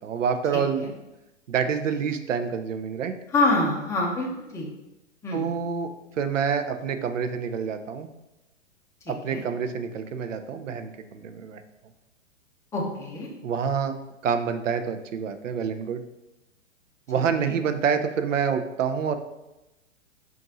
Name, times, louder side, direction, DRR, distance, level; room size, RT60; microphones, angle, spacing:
voice 1, 0.0-0.8 1.5-3.1 5.3-5.9 6.2-8.1 9.1-11.6 13.4-13.9 14.2-16.0 17.1-19.2, right 7 dB, 85° right, 9 dB, 0.6 m, -27 dB
voice 2, 3.3-4.3 4.5-4.7 5.2-5.5 9.3-9.4 12.7-13.3 17.4-17.5, left 2 dB, 10° left, -3 dB, 0.7 m, -25 dB
3.9 x 2.6 x 4.0 m, 0.95 s
hypercardioid pair, 125°, 37 cm